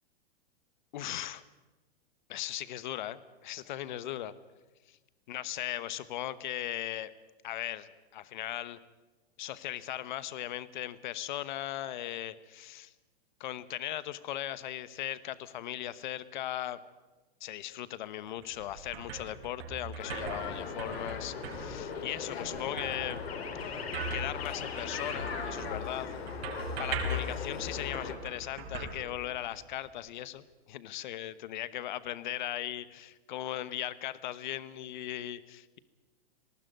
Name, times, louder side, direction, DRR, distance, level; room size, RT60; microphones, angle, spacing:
voice 1, 0.9-1.4 2.3-4.3 4.9-5.0 5.3-7.1 7.4-8.8 9.4-12.9 13.4-16.8 17.4-23.2 24.1-26.1 26.8-35.8, left 13 dB, 45° left, 16 dB, 1.1 m, -38 dB
sound 1, 18.3-29.8, right 1 dB, 65° right, 5.9 m, -40 dB
FX - parque infantil juguete electronico, 20.0-28.1, left 5 dB, 70° left, 4.0 m, -39 dB
19.5 x 18.0 x 9.3 m, 1.2 s
supercardioid pair, 175°, 32 cm